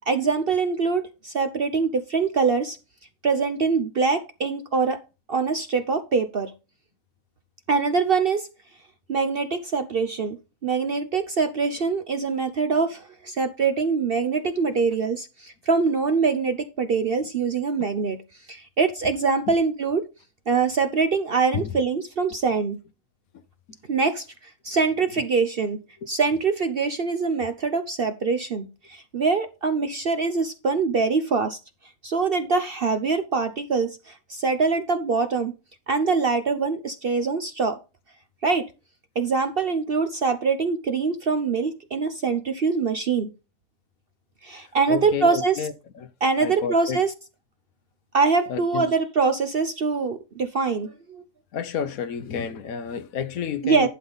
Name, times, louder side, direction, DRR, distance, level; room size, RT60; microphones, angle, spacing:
voice 1, 0.1-2.8 3.2-5.0 5.3-6.5 7.7-8.5 9.1-10.4 10.6-18.2 18.5-20.1 20.5-22.8 23.9-25.8 26.1-31.6 32.0-35.5 35.9-37.8 38.4-38.7 39.2-43.3 44.4-45.6 46.2-47.1 48.1-51.2 53.6-53.9, right 4 dB, 50° right, 0.7 m, -24 dB
voice 2, 44.9-46.1 46.4-47.0 48.5-48.9 51.5-53.9, left 7 dB, 70° left, 1.2 m, -30 dB
11.5 x 5.5 x 4.0 m
omnidirectional pair, 1.6 m